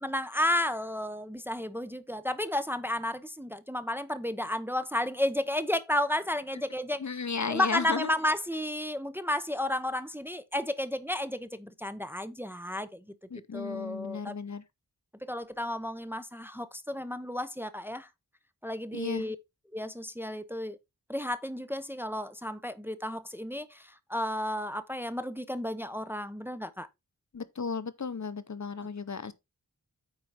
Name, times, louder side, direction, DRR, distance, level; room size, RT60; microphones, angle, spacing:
voice 1, 0.0-7.2 7.5-13.0 13.5-14.4 15.3-18.1 18.6-19.4 19.7-20.8 21.1-26.9, left 1 dB, 5° right, 0.7 m, -32 dB
voice 2, 7.0-8.1 13.3-14.6 18.9-19.3 27.3-29.3, left 5 dB, 50° left, 0.7 m, -34 dB
8.9 x 4.6 x 4.1 m
wide cardioid pair, 70°, 36 cm